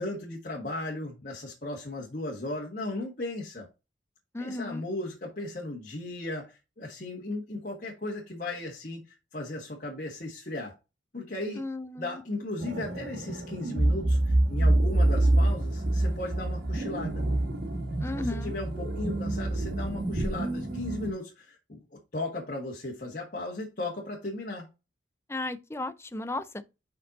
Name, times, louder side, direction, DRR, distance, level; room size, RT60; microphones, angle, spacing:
voice 1, 0.0-3.7 4.4-10.8 11.1-11.6 12.0-17.2 18.1-24.7, left 2 dB, 45° left, 1.4 m, -36 dB
voice 2, 4.3-4.8 11.6-12.2 18.0-18.5 25.3-26.6, left 2 dB, 15° left, 0.5 m, -35 dB
sound 1, 12.6-21.1, right 1 dB, 55° right, 1.5 m, -27 dB
5.3 x 5.2 x 4.1 m
head